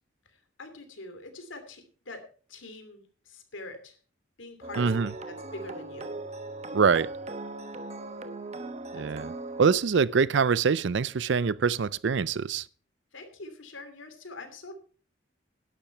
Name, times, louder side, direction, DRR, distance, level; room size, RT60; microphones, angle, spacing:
voice 1, 0.2-2.2 2.5-4.0 4.4-6.1 8.9-9.0 13.1-14.7, left 2 dB, 75° left, 2.8 m, -44 dB
sound 1, 4.6-9.8, right 2 dB, 35° right, 1.0 m, -39 dB
voice 2, 4.8-5.1 6.7-7.1 8.9-9.3 9.6-12.6, right 5 dB, 65° right, 0.5 m, -24 dB
12.0 x 11.5 x 4.5 m
head